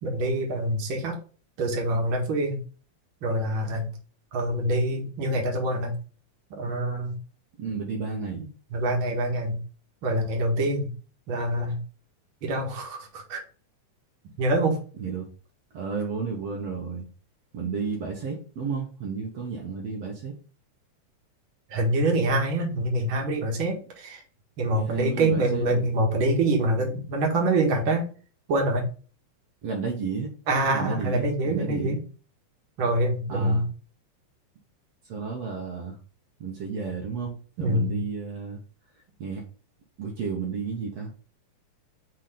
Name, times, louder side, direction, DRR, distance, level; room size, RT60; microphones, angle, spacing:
voice 1, 0.0-1.2 1.6-2.6 3.2-3.9 4.3-5.9 6.5-7.2 8.7-9.6 10.0-10.9 11.3-11.8 12.4-13.4 14.4-14.8 21.7-24.2 24.6-28.0 28.5-28.9 30.5-32.0 32.8-33.6 37.6-38.0, right 1 dB, 50° right, 1 dB, 2.2 m, -25 dB
voice 2, 7.6-8.5 15.0-15.3 15.7-17.1 17.5-20.3 24.7-25.9 29.6-30.3 30.7-32.0 33.3-33.7 35.0-36.0 36.4-38.6 39.2-39.4 40.0-41.1, right 5 dB, 65° right, -1 dB, 2.3 m, -32 dB
6.0 x 3.6 x 5.1 m, 0.39 s
omnidirectional pair, 3.3 m